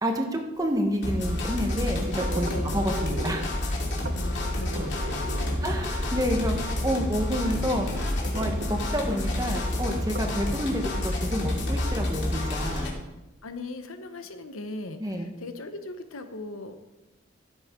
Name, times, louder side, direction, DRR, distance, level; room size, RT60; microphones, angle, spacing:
voice 1, 0.0-3.5 5.6-7.9 8.3-12.9 15.0-15.3, equal, 15° right, 3 dB, 1.2 m, -29 dB
sound 1, 0.6-10.6, right 2 dB, 45° right, 0.6 m, -41 dB
sound 2, 1.0-12.9, left 1 dB, 55° left, 2.6 m, -29 dB
voice 2, 2.5-2.8 4.1-5.6 13.4-16.8, left 2 dB, 85° left, 8 dB, 1.0 m, -39 dB
15.0 x 8.2 x 3.8 m, 1.0 s
head